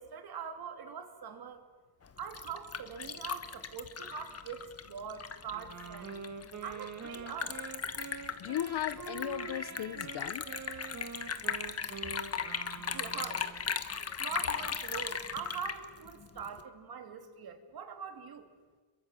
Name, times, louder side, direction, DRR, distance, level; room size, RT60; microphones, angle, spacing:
voice 1, 0.0-1.6 2.2-6.2 6.6-7.6 12.9-13.4 14.2-18.5, right 7 dB, 60° right, 2.9 m, -43 dB
Liquid, 2.0-16.6, left 6 dB, 35° left, 1.4 m, -38 dB
Wind instrument woodwind instrument, 5.5-13.7, right 6 dB, 45° right, 2.0 m, -45 dB
voice 2, 8.4-10.4, left 12 dB, 70° left, 0.9 m, -36 dB
28.5 x 23.0 x 7.6 m
wide cardioid pair, 155°, 40 cm